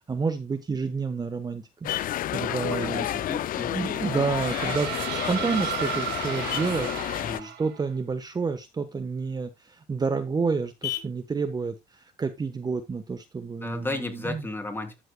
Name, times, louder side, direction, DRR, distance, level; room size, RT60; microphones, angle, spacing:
voice 1, 0.1-1.9 2.3-3.1 3.7-6.9 7.4-14.5, right 4 dB, 25° right, 1.1 m, -29 dB
Vehicle horn car horn honking, 0.6-13.6, left 13 dB, 70° left, 2.5 m, -44 dB
sound 1, 1.8-7.4, left 13 dB, 55° left, 0.5 m, -30 dB
voice 2, 2.6-3.8 7.2-7.5 13.6-15.0, left 2 dB, 15° left, 3.0 m, -34 dB
sound 2, 3.5-7.9, right 11 dB, 80° right, 1.6 m, -34 dB
12.5 x 7.7 x 2.3 m
cardioid pair, 110°, 17 cm